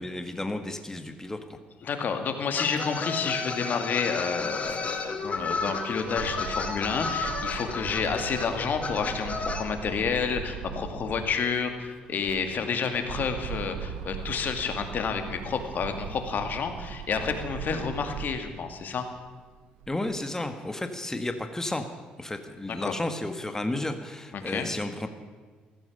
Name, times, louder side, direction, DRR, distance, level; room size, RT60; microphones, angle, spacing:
voice 1, 0.0-1.6 19.9-21.9 22.2-25.1, left 1 dB, 15° left, 7 dB, 1.5 m, -32 dB
voice 2, 1.8-19.1 22.8-22.9 24.3-24.7, left 6 dB, 55° left, 6 dB, 2.2 m, -30 dB
sound 1, 2.6-9.6, left 4 dB, 35° left, 2.3 m, -32 dB
sound 2, 3.4-3.5 3.7-11.5 12.0-18.5 19.0-20.2, right 8 dB, 85° right, 1.0 m, -40 dB
15.5 x 14.0 x 6.7 m, 1.4 s
supercardioid pair, 65°, 4 cm